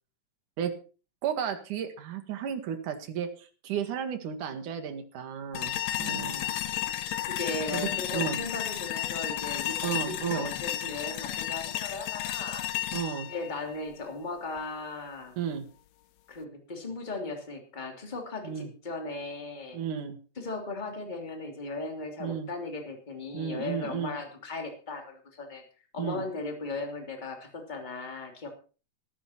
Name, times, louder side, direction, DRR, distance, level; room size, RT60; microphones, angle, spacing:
voice 1, 1.2-6.4 7.7-8.4 9.8-10.5 12.9-13.3 15.4-15.7 18.4-18.7 19.7-20.2 22.2-22.5 23.3-24.1 26.0-26.2, right 8 dB, 65° right, 7 dB, 3.1 m, -33 dB
sound 1, 5.5-14.6, left 13 dB, 80° left, 1.5 m, -33 dB
voice 2, 6.0-6.4 7.3-12.8 13.3-15.3 16.3-19.8 20.4-25.6 25.9-28.5, left 3 dB, 15° left, 3 dB, 2.5 m, -37 dB
13.5 x 13.5 x 4.4 m, 0.36 s
omnidirectional pair, 4.0 m